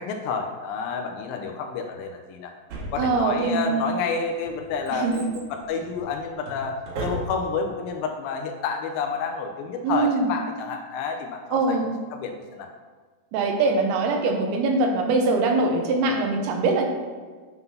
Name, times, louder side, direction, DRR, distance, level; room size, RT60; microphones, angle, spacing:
voice 1, 0.0-2.5 2.9-6.7 7.0-11.8 12.1-12.7, left 5 dB, 80° left, 4 dB, 2.3 m, -29 dB
Drawer open or close, 2.7-3.6 4.2-7.7 7.9-8.0, right 1 dB, 60° right, 2.3 m, -36 dB
voice 2, 3.0-3.8 4.9-5.2 9.8-10.3 11.5-11.9 13.3-16.9, right 3 dB, 90° right, 2 dB, 2.8 m, -22 dB
9.1 x 3.9 x 5.5 m, 1.4 s
omnidirectional pair, 4.5 m